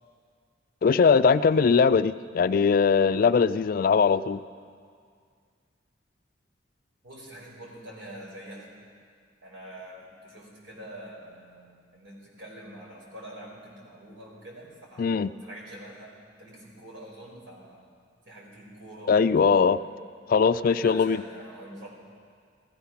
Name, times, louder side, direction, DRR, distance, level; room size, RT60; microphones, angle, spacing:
voice 1, 0.8-4.4 15.0-15.3 19.1-19.8 20.3-21.2, left 5 dB, 50° left, 15 dB, 0.3 m, -21 dB
voice 2, 7.0-8.7 9.4-15.1 15.4-17.8 18.2-19.8 20.7-21.9, right 1 dB, 90° right, -3 dB, 4.5 m, -45 dB
16.0 x 14.0 x 5.8 m, 2.1 s
head